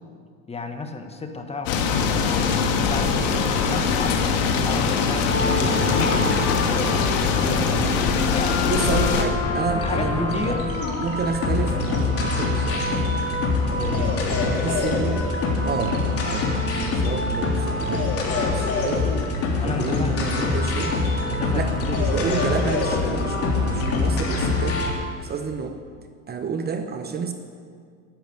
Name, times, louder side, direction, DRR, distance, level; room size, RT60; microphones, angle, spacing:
voice 1, 0.5-2.5 2.8-4.3 4.6-6.2 6.5-7.9 8.2-8.6 9.8-10.7 13.7-14.4 19.6-20.2 21.2-21.7, left 3 dB, 15° left, 6 dB, 1.4 m, -33 dB
sound 1, 1.7-9.3, left 5 dB, 75° left, 2.3 m, -22 dB
sound 2, 5.2-24.9, left 3 dB, 40° left, 3.4 m, -24 dB
voice 2, 8.6-10.7 11.0-13.0 14.3-15.2 15.6-19.1 19.7-21.0 21.5-24.8 25.2-25.8 26.3-27.3, right 5 dB, 25° right, 7 dB, 1.0 m, -30 dB
13.5 x 11.0 x 9.5 m, 2.1 s
supercardioid pair, 125°, 37 cm